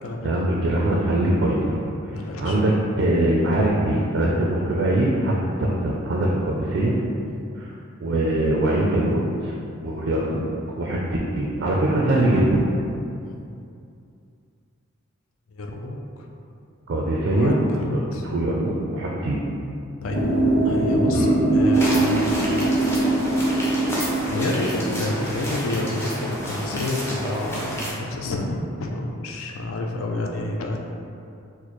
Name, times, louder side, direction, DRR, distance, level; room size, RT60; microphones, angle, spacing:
voice 1, 0.2-1.8 2.1-5.3 5.6-6.9 7.6-7.7 8.0-9.5 9.8-10.4 10.8-12.6 16.9-19.4 21.1-21.3, right 1 dB, 55° right, -3 dB, 0.3 m, -22 dB
voice 2, 2.1-2.6 7.3-7.5 9.8-10.0 13.2-13.5 15.5-16.0 17.3-18.2 20.0-20.3 20.6-22.2 24.3-30.8, left 2 dB, 70° left, 1 dB, 0.4 m, -29 dB
sound 1, 20.1-25.1, right 2 dB, 35° left, 1.2 m, -22 dB
sound 2, 21.7-27.9, equal, 10° left, 0.4 m, -30 dB
4.1 x 2.1 x 3.0 m, 2.5 s
head